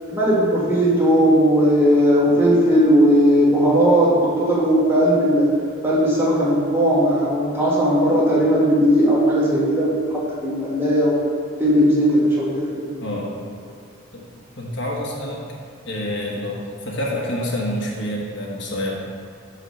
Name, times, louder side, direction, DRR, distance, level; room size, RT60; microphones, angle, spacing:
voice 1, 0.1-5.5 5.8-11.2 11.6-12.9, equal, 10° right, -7 dB, 1.6 m, -17 dB
voice 2, 14.6-15.4 15.8-19.0, left 1 dB, 60° left, -3 dB, 1.3 m, -27 dB
7.9 x 4.0 x 6.4 m, 2.2 s
head